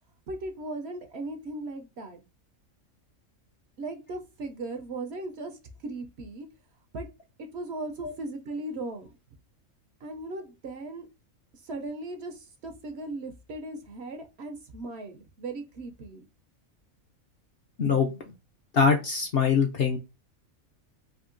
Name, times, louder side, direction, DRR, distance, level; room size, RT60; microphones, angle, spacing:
voice 1, 0.3-2.2 3.8-6.5 6.9-7.1 7.4-9.1 10.0-11.1 11.6-16.2, right 2 dB, 60° right, 6 dB, 0.8 m, -37 dB
voice 2, 18.7-20.0, left 6 dB, 60° left, 3 dB, 0.7 m, -23 dB
3.6 x 2.7 x 2.5 m, 0.27 s
omnidirectional pair, 1.4 m